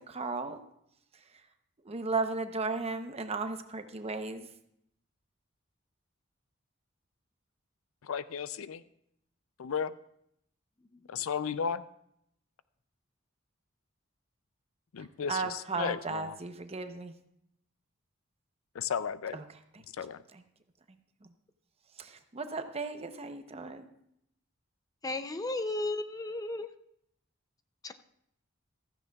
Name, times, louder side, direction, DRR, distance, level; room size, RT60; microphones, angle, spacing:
voice 1, 0.1-0.6 1.8-4.5 15.0-17.2 19.3-19.4 19.7-19.8 20.3-20.4 22.0-23.8, right 3 dB, 30° right, 7 dB, 0.8 m, -35 dB
voice 2, 8.0-8.8 9.6-10.0 11.1-11.8 14.9-16.3 18.7-19.4 20.0-20.2, left 7 dB, 75° left, 15 dB, 0.4 m, -34 dB
voice 3, 25.0-26.7 27.8-27.9, left 2 dB, 20° left, 10 dB, 0.5 m, -34 dB
15.0 x 13.5 x 2.3 m, 0.75 s
head